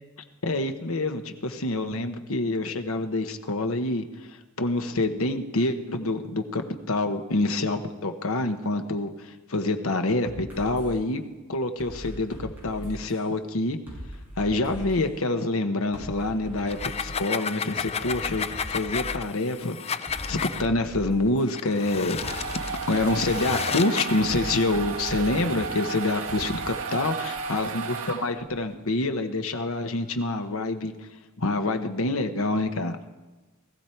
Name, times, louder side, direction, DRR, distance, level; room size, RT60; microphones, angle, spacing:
voice 1, 0.4-4.0 4.6-11.2 11.5-13.8 14.4-22.2 22.5-30.9 31.4-33.0, left 2 dB, 65° left, 7 dB, 1.1 m, -27 dB
sound 1, 10.2-10.9 11.8-13.2 13.9-15.0 15.9-17.2 17.7-19.2 20.1-21.5 22.1-23.3 24.2-26.7, equal, 10° right, 6.5 m, -40 dB
sound 2, 16.6-20.7 21.5-24.2, left 6 dB, 30° left, 0.4 m, -32 dB
sound 3, 21.9-28.6, right 5 dB, 75° right, 1.4 m, -33 dB
19.5 x 14.5 x 4.5 m, 1.2 s
head